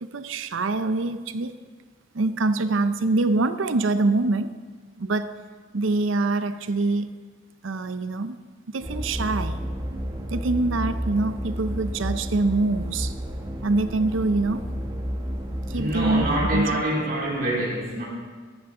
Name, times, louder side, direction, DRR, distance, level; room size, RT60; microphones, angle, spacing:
voice 1, 0.0-1.5 2.1-4.5 5.0-5.3 5.7-7.1 7.6-8.4 8.7-9.6 10.3-13.1 13.6-14.7 15.7-16.8, right 3 dB, 70° right, 11 dB, 0.6 m, -24 dB
sound 1, 8.8-16.6, equal, 20° right, 1.1 m, -31 dB
voice 2, 15.7-18.0, right 1 dB, 50° right, -5 dB, 3.6 m, -26 dB
14.5 x 11.0 x 3.8 m, 1.5 s
head